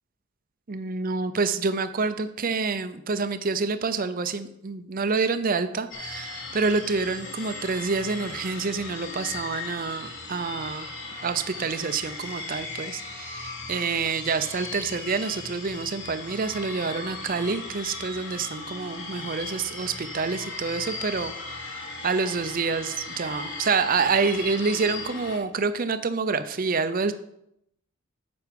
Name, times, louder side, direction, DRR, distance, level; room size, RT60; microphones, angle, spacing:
voice 1, 0.7-10.9 11.2-21.7 22.0-27.1, right 4 dB, 40° right, 11 dB, 0.6 m, -27 dB
sound 1, 5.9-25.4, left 3 dB, 65° left, 2.5 m, -37 dB
9.4 x 7.0 x 5.2 m, 0.77 s
head